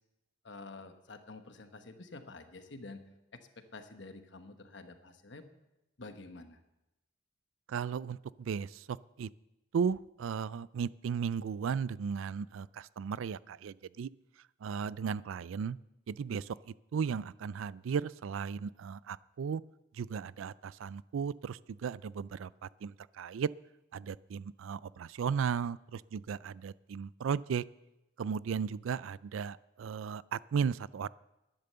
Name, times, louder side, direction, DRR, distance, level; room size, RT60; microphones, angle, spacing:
voice 1, 0.4-3.0 3.3-5.5 6.0-6.6, left 3 dB, 60° left, 8 dB, 1.2 m, -49 dB
voice 2, 7.7-9.3 9.7-14.1 14.6-15.8 16.1-19.6 19.9-23.5 23.9-27.6 28.2-31.1, right 6 dB, 75° right, 21 dB, 0.3 m, -35 dB
12.0 x 10.5 x 6.8 m, 0.95 s
head